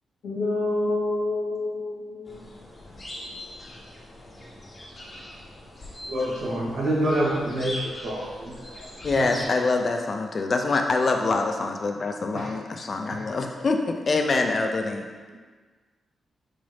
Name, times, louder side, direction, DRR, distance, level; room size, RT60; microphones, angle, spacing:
voice 1, 0.2-2.5, left 2 dB, 75° left, 0.8 m, -27 dB
sound 1, 2.3-9.5, left 1 dB, 25° left, 0.7 m, -41 dB
voice 2, 6.1-8.9 9.1-9.4 12.3-12.5 13.1-13.2, right 1 dB, 70° right, 1.0 m, -27 dB
voice 3, 9.0-15.0, left 3 dB, 40° left, 0.3 m, -25 dB
4.0 x 2.5 x 3.2 m
cardioid pair, 105°, 0 cm